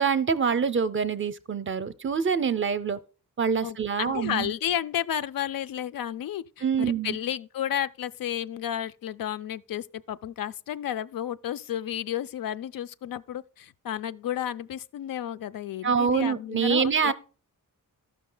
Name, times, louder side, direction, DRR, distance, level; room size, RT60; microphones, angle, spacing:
voice 1, 0.0-3.0 3.4-4.5 6.6-7.2 15.8-17.1, right 6 dB, 35° right, 0.5 m, -25 dB
voice 2, 3.6-17.1, left 10 dB, 80° left, 0.5 m, -32 dB
13.5 x 5.9 x 3.7 m
wide cardioid pair, 175°, 34 cm